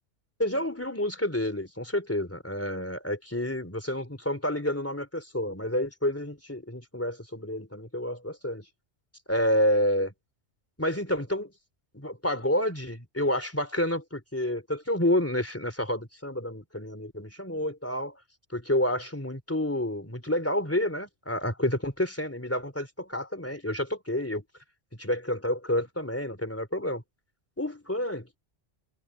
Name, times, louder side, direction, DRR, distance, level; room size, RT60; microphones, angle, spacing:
voice 1, 0.4-8.6 9.3-10.1 10.8-11.5 11.9-18.2 18.5-24.4 25.0-27.0 27.6-28.4, left 1 dB, 10° left, 3.5 m, -29 dB
omnidirectional pair, 1.2 m